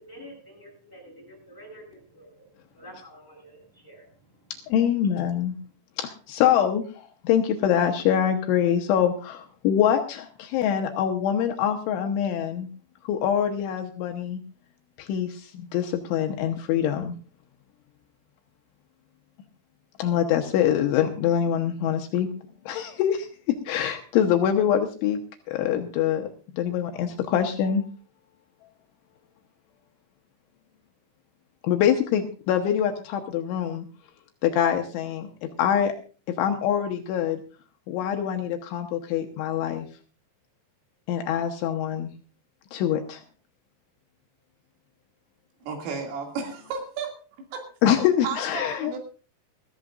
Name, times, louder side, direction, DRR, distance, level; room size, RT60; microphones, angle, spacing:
voice 1, 0.0-4.5, equal, 5° left, -3 dB, 7.2 m, -48 dB
voice 2, 4.7-5.5 6.0-12.7 13.0-14.4 15.0-17.2 20.0-22.3 22.7-23.3 23.7-25.2 25.5-26.3 26.5-27.8 31.6-33.9 34.4-35.9 36.4-37.4 37.9-39.9 41.1-42.1 42.7-43.2 47.8-49.0, left 9 dB, 75° left, 4 dB, 3.2 m, -24 dB
voice 3, 45.6-47.1 47.5-47.6 48.2-49.0, right 5 dB, 75° right, 2 dB, 5.0 m, -33 dB
21.0 x 14.0 x 2.5 m, 0.37 s
omnidirectional pair, 5.9 m